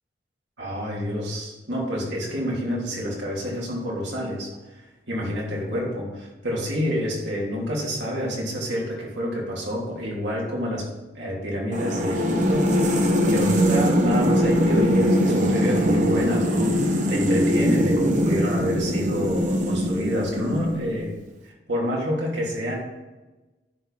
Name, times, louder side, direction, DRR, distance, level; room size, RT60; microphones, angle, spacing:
voice 1, 0.6-10.9 11.1-21.1 21.4-22.7, equal, 75° right, -4 dB, 3.1 m, -28 dB
sound 1, 11.7-21.1, equal, 40° right, 1.1 m, -21 dB
10.5 x 4.8 x 5.7 m, 1.1 s
head